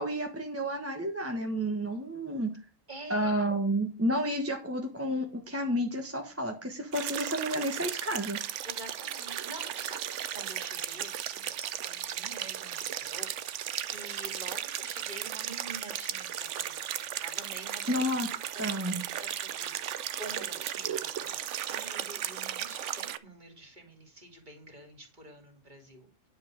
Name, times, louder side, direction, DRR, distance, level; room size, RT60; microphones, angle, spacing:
voice 1, 0.0-2.5 3.1-8.4 17.9-18.3 18.6-19.0, equal, 10° right, 2 dB, 1.2 m, -31 dB
voice 2, 2.9-3.3 8.6-18.0 18.5-18.8 19.1-26.3, right 2 dB, 35° right, 3 dB, 2.7 m, -48 dB
sound 1, 6.9-23.2, right 10 dB, 70° right, 1.0 m, -36 dB
9.9 x 5.4 x 6.4 m, 0.33 s
omnidirectional pair, 1.3 m